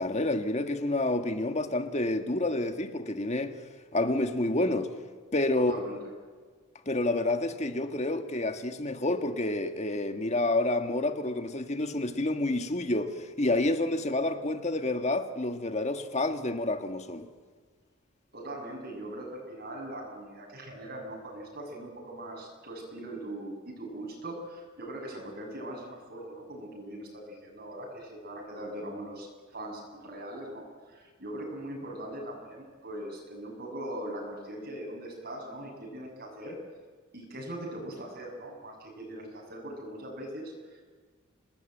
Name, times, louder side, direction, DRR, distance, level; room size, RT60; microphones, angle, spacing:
voice 1, 0.0-3.6 3.9-4.9 5.3-5.7 6.8-17.3, left 2 dB, 35° left, 7 dB, 1.7 m, -29 dB
voice 2, 5.6-6.0 13.5-13.6 18.3-36.6 37.1-40.8, right 1 dB, 50° right, -2 dB, 7.1 m, -41 dB
27.5 x 19.5 x 9.2 m, 1.6 s
head